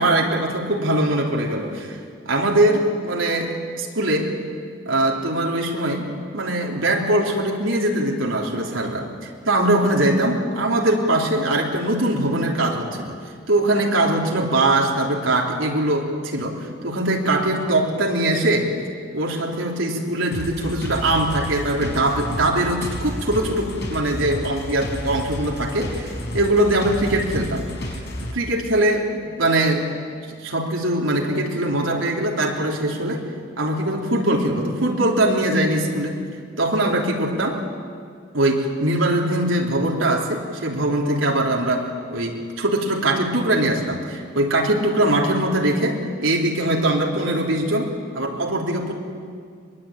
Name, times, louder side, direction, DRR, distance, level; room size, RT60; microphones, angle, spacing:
voice 1, 0.0-2.0 2.3-4.3 4.8-6.1 6.3-13.2 13.5-18.7 19.1-27.6 28.2-29.8 30.4-33.2 33.6-36.2 36.6-37.6 38.3-48.9, right 1 dB, 85° right, -1 dB, 3.6 m, -22 dB
sound 1, 20.3-28.3, left 1 dB, 60° left, 5.2 m, -31 dB
23.0 x 22.5 x 8.9 m, 2.1 s
head